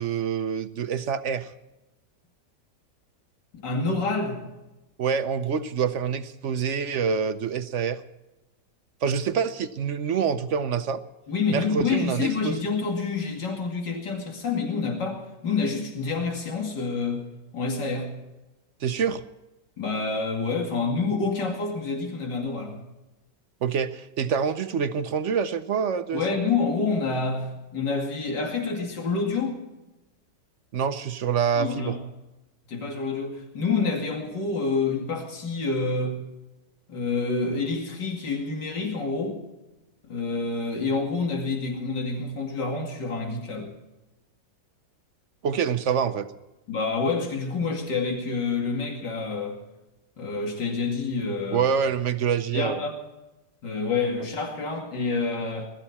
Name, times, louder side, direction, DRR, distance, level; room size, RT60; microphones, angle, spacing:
voice 1, 0.0-1.5 5.0-8.0 9.0-11.0 11.5-12.7 18.8-19.2 23.6-26.2 30.7-32.0 45.4-46.3 51.5-52.8, right 7 dB, 55° right, 11 dB, 0.8 m, -26 dB
voice 2, 3.5-4.4 11.3-17.2 17.5-18.1 19.8-22.8 26.1-29.6 31.6-32.0 32.7-36.2 36.9-39.4 40.1-43.7 46.7-49.6 50.2-51.7 52.5-52.9 53.6-55.7, left 4 dB, 75° left, 1 dB, 3.0 m, -28 dB
21.0 x 13.5 x 4.3 m, 1.0 s
omnidirectional pair, 1.9 m